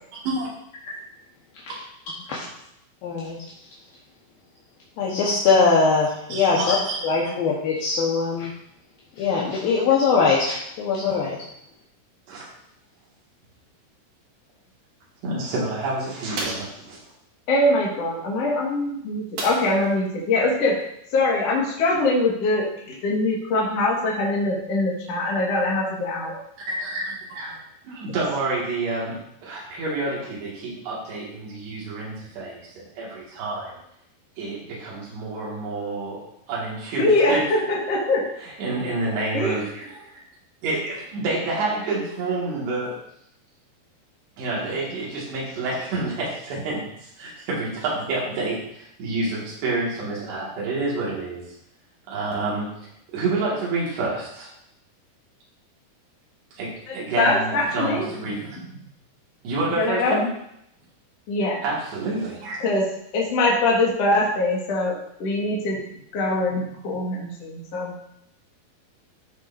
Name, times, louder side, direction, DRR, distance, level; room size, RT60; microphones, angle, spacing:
voice 1, 3.0-3.4 5.0-6.8 7.0-8.5 9.2-11.4, left 4 dB, 70° left, -5 dB, 2.9 m, -21 dB
voice 2, 6.3-7.0 12.3-12.5 15.2-17.0 26.7-27.6 27.8-29.2 29.4-33.8 34.4-36.2 36.5-37.5 38.6-40.1 40.6-43.0 44.4-51.4 52.1-52.7 53.1-54.5 56.5-58.6 59.4-60.3 61.6-62.6, right 2 dB, 90° right, -5 dB, 4.2 m, -28 dB
sound 1, 16.3-16.8 19.4-19.9 20.3-20.4 20.8-21.0, right 2 dB, 55° right, 2.8 m, -32 dB
voice 3, 17.5-20.8 21.1-26.4 36.9-38.2 39.3-39.6 56.9-58.1 59.8-60.2 61.3-61.6 62.6-62.9 63.1-65.8 66.1-67.9, left 2 dB, 50° left, -4 dB, 2.3 m, -23 dB
14.0 x 6.7 x 2.6 m, 0.74 s
omnidirectional pair, 4.6 m